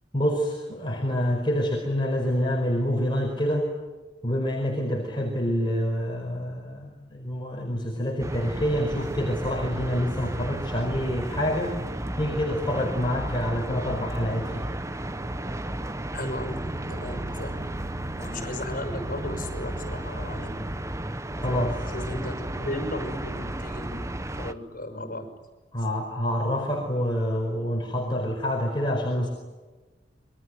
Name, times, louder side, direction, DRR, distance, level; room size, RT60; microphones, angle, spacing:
voice 1, 0.1-3.7 4.2-11.8 12.2-14.7 21.4-21.8 25.7-29.3, equal, 25° left, 0 dB, 4.8 m, -27 dB
sound 1, 8.2-24.5, right 1 dB, 15° right, 1.0 m, -33 dB
voice 2, 16.1-17.7 18.2-20.6 21.9-25.3, left 1 dB, 50° left, 7 dB, 5.7 m, -35 dB
28.0 x 23.5 x 9.1 m, 1.2 s
head